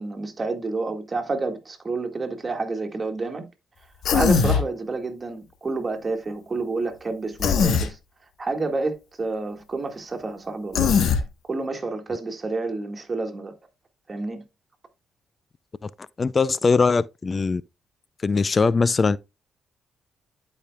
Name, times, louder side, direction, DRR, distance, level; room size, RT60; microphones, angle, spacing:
voice 1, 0.0-3.5 4.1-8.0 8.4-11.0 11.5-13.5 14.1-14.4, right 3 dB, 35° right, 1.8 m, -29 dB
Human voice, 4.0-4.6 7.4-7.9 10.7-11.2, left 6 dB, 70° left, 1.1 m, -20 dB
voice 2, 16.2-17.6 18.2-19.2, left 4 dB, 40° left, 0.3 m, -21 dB
11.5 x 5.1 x 2.3 m
supercardioid pair, 60°, 0 cm